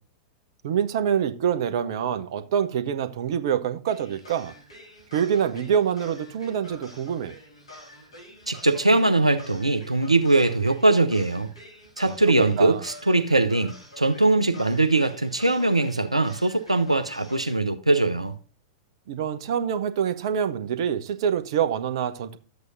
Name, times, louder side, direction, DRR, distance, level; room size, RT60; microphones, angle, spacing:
voice 1, 0.6-4.5 5.1-7.3 12.1-12.2 12.6-12.8 19.1-22.4, right 8 dB, 55° right, 0.9 m, -26 dB
sound 1, 3.9-17.5, left 1 dB, 75° left, 4.0 m, -47 dB
voice 2, 8.5-11.5 12.0-18.3, right 2 dB, 90° right, 0.7 m, -21 dB
12.5 x 8.0 x 2.6 m
figure-of-eight pair, 95°, 3 cm